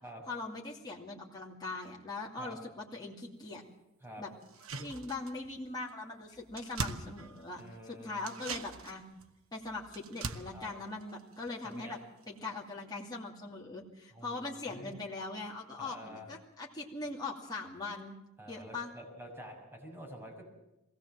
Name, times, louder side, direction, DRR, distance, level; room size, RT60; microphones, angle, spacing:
voice 1, 0.3-3.6 4.2-4.3 4.8-9.1 9.5-12.0 12.3-18.2 18.5-18.9, left 3 dB, 20° left, -3 dB, 2.5 m, -41 dB
sound 1, 4.4-5.6 5.9-6.0 6.2-7.8 8.2-11.9 12.2-12.3, right 4 dB, 75° right, 1.2 m, -42 dB
voice 2, 7.6-8.3 10.5-10.7 11.6-12.0 14.1-14.9 15.8-16.3 18.4-20.4, equal, 10° right, -2 dB, 6.3 m, -48 dB
22.5 x 17.0 x 7.5 m, 0.94 s
head